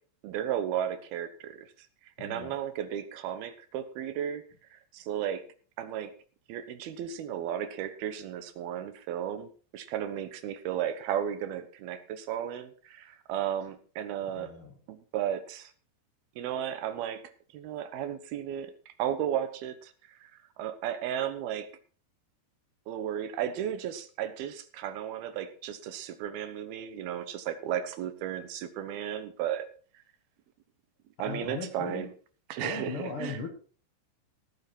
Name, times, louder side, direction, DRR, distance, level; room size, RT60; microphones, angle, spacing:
voice 1, 0.2-1.7 2.2-4.4 4.7-5.4 5.8-6.1 6.5-14.5 14.9-15.7 16.4-17.2 17.5-18.7 19.0-19.9 20.2-20.3 20.6-21.7 22.9-29.7 31.2-32.1 32.5-33.4, right 10 dB, 70° right, 11 dB, 2.7 m, -34 dB
voice 2, 2.2-2.5 14.3-14.7 31.2-32.1 32.6-33.5, left 4 dB, 50° left, 2 dB, 1.6 m, -38 dB
17.5 x 8.8 x 4.5 m, 0.41 s
omnidirectional pair, 5.2 m